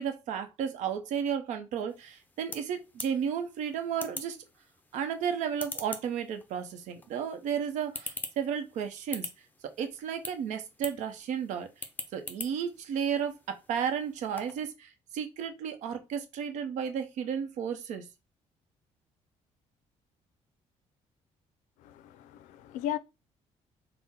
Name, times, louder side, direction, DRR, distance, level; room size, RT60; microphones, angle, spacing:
voice 1, 0.0-4.4 4.9-9.3 9.8-11.7 12.1-13.4 13.7-18.1, right 8 dB, 75° right, 0.7 m, -33 dB
sound 1, 1.9-14.7, left 3 dB, 15° left, 0.5 m, -45 dB
voice 2, 21.8-23.0, left 11 dB, 90° left, 0.4 m, -36 dB
3.7 x 2.1 x 4.2 m
cardioid pair, 140°, 13 cm